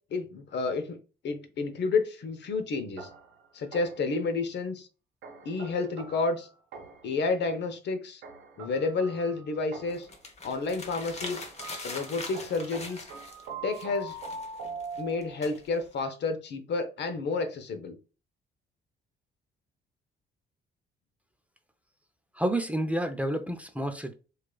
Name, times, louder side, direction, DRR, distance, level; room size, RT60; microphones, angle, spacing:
voice 1, 0.1-1.0 1.2-3.1 3.5-4.9 5.4-6.5 7.0-8.2 8.6-10.1 10.4-11.5 11.8-13.1 13.6-14.2 15.0-18.0, left 3 dB, 60° left, 0.7 m, -30 dB
sound 1, 3.0-4.2 5.2-7.2 8.2-10.2 11.2-15.5, right 3 dB, 80° right, 0.8 m, -43 dB
sound 2, 9.9-13.5 13.7-16.0, left 3 dB, 35° left, 0.9 m, -42 dB
voice 2, 22.4-24.1, right 1 dB, 5° right, 0.5 m, -29 dB
4.6 x 2.4 x 2.2 m
cardioid pair, 90°, 20 cm